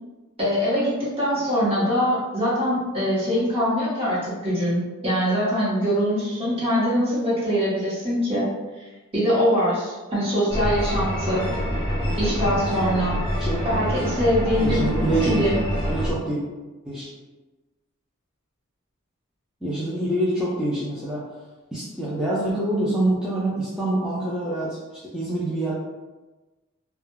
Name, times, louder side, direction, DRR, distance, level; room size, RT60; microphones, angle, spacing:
voice 1, 0.4-8.5 8.8-8.9 9.1-11.4 12.2-13.2 13.6-14.9 15.2-15.6, equal, 25° right, -8 dB, 0.9 m, -23 dB
sound 1, 10.5-16.1, equal, 20° left, 0.7 m, -26 dB
voice 2, 13.4-13.8 14.6-15.3 15.9-16.4 16.8-17.1 19.6-21.2 21.7-24.8 25.1-25.7, right 1 dB, 5° right, -9 dB, 0.3 m, -25 dB
2.2 x 2.2 x 3.0 m, 1.2 s
head